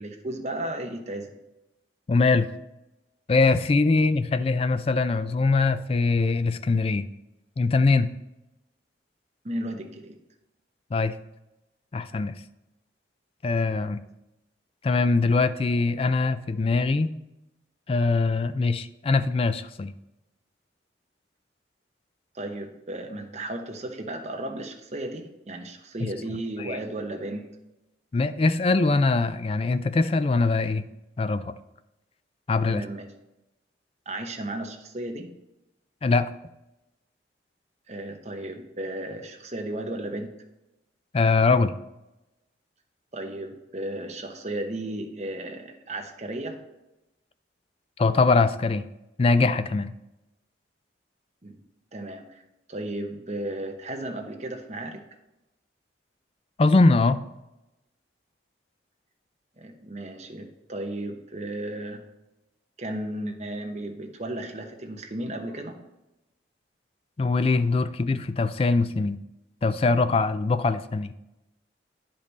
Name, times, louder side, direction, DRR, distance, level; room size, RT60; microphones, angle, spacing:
voice 1, 0.0-1.3 9.4-10.2 22.3-27.5 32.7-33.1 34.1-35.3 37.9-40.3 43.1-46.6 51.4-51.6 51.9-52.4 52.7-55.0 59.6-62.0 62.8-65.8, right 1 dB, 40° right, 4 dB, 0.9 m, -34 dB
voice 2, 2.1-2.5 3.3-7.1 7.6-8.1 10.9-11.2 11.9-12.3 13.4-14.0 14.8-17.1 17.9-19.9 26.0-26.1 26.6-26.8 28.1-30.9 31.2-31.5 32.5-32.8 36.0-36.3 41.1-41.7 48.0-48.8 49.2-49.9 56.6-57.2 67.2-69.2 69.6-71.1, left 3 dB, 30° left, 12 dB, 0.3 m, -22 dB
10.0 x 5.2 x 4.1 m, 0.96 s
head